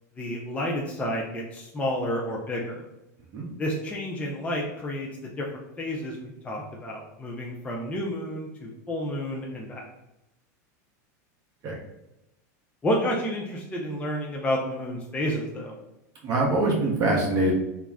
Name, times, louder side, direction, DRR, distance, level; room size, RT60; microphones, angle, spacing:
voice 1, 0.2-2.8 3.6-5.5 5.8-9.9 12.8-15.7, equal, 15° left, -2 dB, 0.4 m, -30 dB
voice 2, 16.2-17.5, right 2 dB, 40° right, -1 dB, 0.6 m, -23 dB
2.4 x 2.0 x 3.3 m, 0.93 s
supercardioid pair, 120°, 9 cm